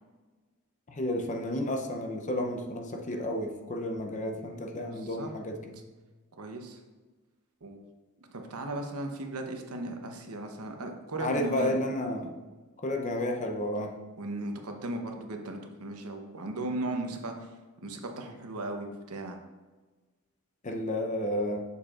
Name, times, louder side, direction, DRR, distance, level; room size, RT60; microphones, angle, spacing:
voice 1, 0.9-5.8 11.2-12.3 12.8-14.0 20.6-21.6, left 1 dB, 35° left, 3 dB, 0.6 m, -31 dB
voice 2, 4.4-5.3 6.3-6.8 7.6-7.8 8.2-11.8 14.2-17.5 17.8-19.4, right 2 dB, 80° right, 4 dB, 0.8 m, -37 dB
7.5 x 6.6 x 2.5 m, 1.3 s
head